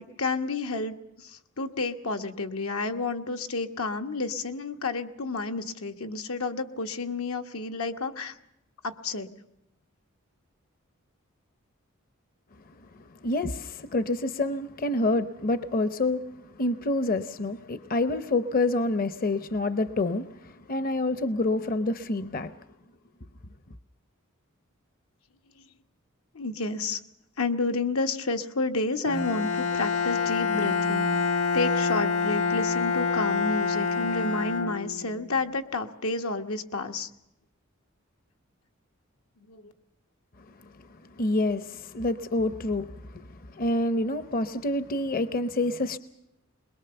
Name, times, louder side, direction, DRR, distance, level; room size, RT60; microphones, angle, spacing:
voice 1, 0.2-8.4 8.8-9.3 26.3-27.0 27.4-31.1 31.5-37.1 39.5-39.7, left 3 dB, 85° left, 1.4 m, -30 dB
voice 2, 13.2-16.2 16.6-22.6 41.2-46.0, left 2 dB, 45° left, 0.7 m, -27 dB
Bowed string instrument, 29.1-35.2, left 5 dB, 70° left, 1.7 m, -26 dB
22.5 x 21.5 x 7.0 m
head